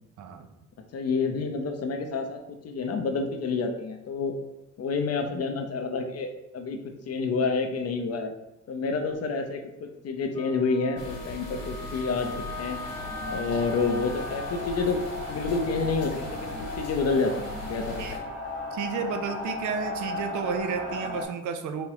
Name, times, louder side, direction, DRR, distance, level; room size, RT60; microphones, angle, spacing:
voice 1, 0.2-0.5 18.0-18.2 18.7-21.9, right 6 dB, 75° right, 7 dB, 0.6 m, -32 dB
voice 2, 0.9-4.3 4.8-6.8 7.1-8.3 8.7-12.8 13.3-15.0 15.3-18.2, left 4 dB, 55° left, 5 dB, 0.6 m, -29 dB
Wind instrument woodwind instrument, 10.3-14.7, left 3 dB, 10° left, 0.3 m, -41 dB
sound 1, 11.0-18.2, left 2 dB, 75° left, 1.4 m, -40 dB
sound 2, 12.1-21.2, left 2 dB, 55° right, 1.1 m, -36 dB
3.5 x 3.1 x 3.0 m, 0.91 s
cardioid pair, 90°, 30 cm